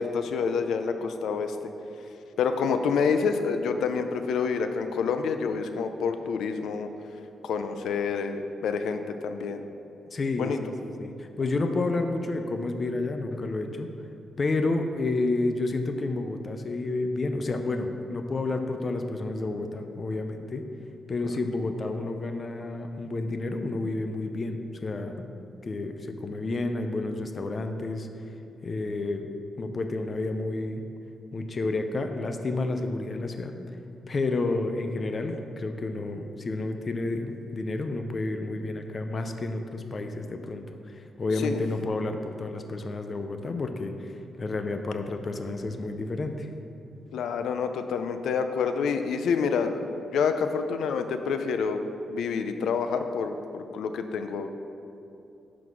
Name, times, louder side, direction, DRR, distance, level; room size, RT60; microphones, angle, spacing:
voice 1, 0.0-1.6 2.4-6.9 7.4-9.6 10.4-10.6 41.4-41.6 47.1-51.8 52.1-54.5, left 5 dB, 90° left, 8 dB, 0.5 m, -28 dB
voice 2, 10.1-13.9 14.4-20.7 21.1-25.3 25.6-28.1 28.6-29.3 29.6-30.8 31.3-33.5 34.1-46.5, left 2 dB, 30° left, 6 dB, 0.5 m, -30 dB
10.5 x 4.0 x 6.2 m, 2.8 s
wide cardioid pair, 175°, 0 cm